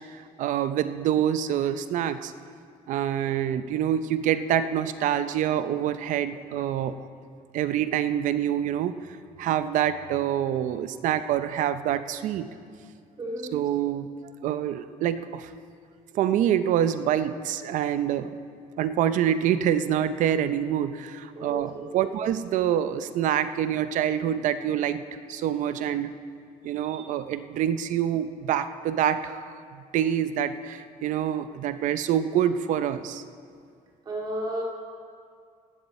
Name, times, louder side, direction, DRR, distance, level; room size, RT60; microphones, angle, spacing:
voice 1, 0.4-2.3 2.9-7.1 7.5-9.0 9.4-12.5 13.5-14.1 14.4-15.5 16.1-18.3 18.8-25.0 25.3-26.2 26.6-33.2, right 10 dB, 65° right, 12 dB, 0.6 m, -26 dB
voice 2, 13.2-13.5 21.4-22.1 34.1-34.6, right 1 dB, 30° right, -2 dB, 2.3 m, -33 dB
17.0 x 12.5 x 4.2 m, 2.2 s
cardioid pair, 180°, 14 cm